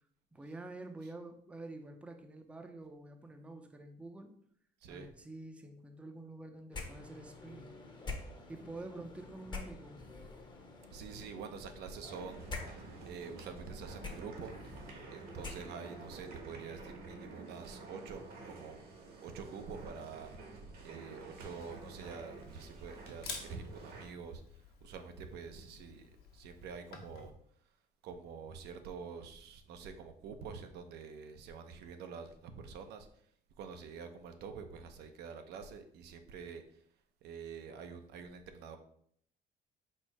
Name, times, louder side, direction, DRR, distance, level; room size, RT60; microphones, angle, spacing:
voice 1, 0.3-4.3 4.9-7.8 8.5-10.0, right 2 dB, 5° right, 6 dB, 0.4 m, -48 dB
voice 2, 4.8-5.1 10.9-14.6 15.1-18.8 19.2-20.4 20.8-27.3 28.0-33.1 33.6-36.8 37.2-38.8, right 6 dB, 75° right, 7 dB, 0.5 m, -47 dB
sound 1, 6.7-16.1, left 3 dB, 25° left, 0.8 m, -47 dB
sound 2, 12.1-24.1, right 3 dB, 60° right, 1.0 m, -49 dB
Camera, 21.5-27.3, left 5 dB, 70° left, 1.1 m, -51 dB
4.4 x 2.0 x 4.5 m, 0.64 s
cardioid pair, 110°, 17 cm